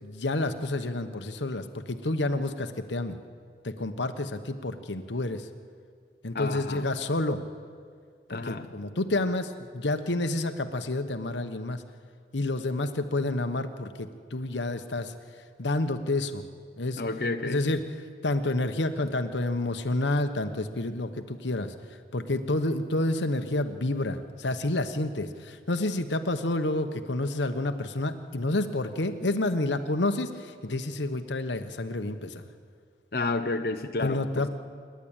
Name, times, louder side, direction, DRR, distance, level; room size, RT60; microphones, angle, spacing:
voice 1, 0.0-3.2 3.6-5.5 6.2-7.4 8.3-11.8 12.3-15.1 15.6-16.4 16.8-17.0 17.4-17.8 18.2-21.7 22.1-32.4 34.0-34.5, left 2 dB, 90° left, 8 dB, 1.2 m, -29 dB
voice 2, 6.3-7.0 8.3-8.7 17.0-17.6 33.1-34.5, left 3 dB, 55° left, 6 dB, 0.8 m, -31 dB
27.0 x 11.5 x 9.0 m, 2.1 s
head